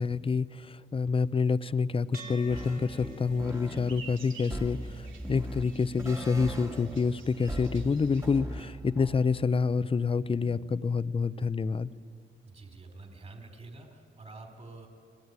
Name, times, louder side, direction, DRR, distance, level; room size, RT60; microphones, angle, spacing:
voice 1, 0.0-11.9, left 5 dB, 30° left, 15 dB, 0.7 m, -28 dB
sound 1, 2.1-10.8, right 4 dB, 50° right, 4.2 m, -53 dB
sound 2, 2.3-8.4, right 5 dB, 85° right, 3.0 m, -53 dB
sound 3, 2.5-9.3, right 1 dB, 15° right, 2.0 m, -40 dB
voice 2, 12.4-14.9, right 3 dB, 35° right, 4 dB, 4.1 m, -47 dB
29.0 x 20.5 x 9.6 m, 2.4 s
cardioid pair, 105°, 20 cm